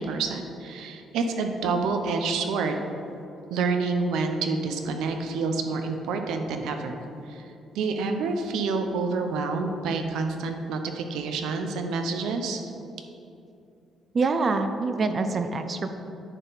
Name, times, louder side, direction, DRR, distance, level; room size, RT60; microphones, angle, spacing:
voice 1, 0.0-2.8 3.5-7.4 7.7-12.7, right 4 dB, 90° right, 6 dB, 0.7 m, -28 dB
voice 2, 14.1-16.0, right 3 dB, 30° right, 8 dB, 0.4 m, -25 dB
9.8 x 4.5 x 4.0 m, 2.7 s
cardioid pair, 165°, 0 cm